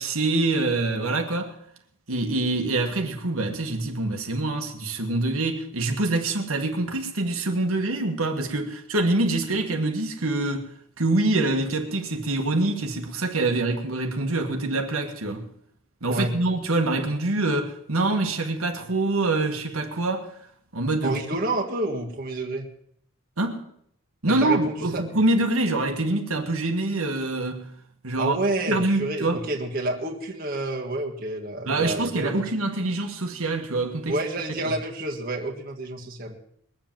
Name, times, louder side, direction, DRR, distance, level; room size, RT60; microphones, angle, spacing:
voice 1, 0.0-1.6 2.1-10.7 11.0-15.5 16.0-20.3 20.7-21.2 23.4-23.6 24.2-27.7 28.0-28.4 28.7-29.4 31.7-34.2 34.6-34.7, right 2 dB, 80° right, 1.7 m, -25 dB
voice 2, 21.0-22.7 24.3-25.1 28.2-32.5 34.1-36.4, right 2 dB, 40° right, 1.7 m, -29 dB
21.0 x 7.7 x 7.5 m
head